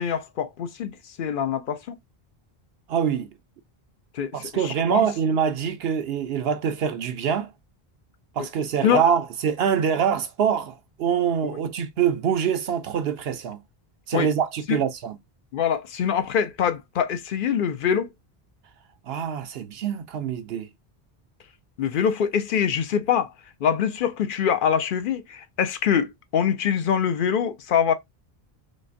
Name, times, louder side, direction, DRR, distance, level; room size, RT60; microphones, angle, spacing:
voice 1, 0.0-2.0 4.1-5.0 8.8-9.0 14.1-14.3 14.7-14.8 15.5-18.1 21.8-23.3 23.6-27.9, left 8 dB, 60° left, 0.7 m, -24 dB
voice 2, 2.9-3.3 4.3-7.5 8.4-13.6 14.1-15.2 19.1-20.7, right 8 dB, 80° right, 0.9 m, -25 dB
5.0 x 2.1 x 2.5 m
omnidirectional pair, 1.0 m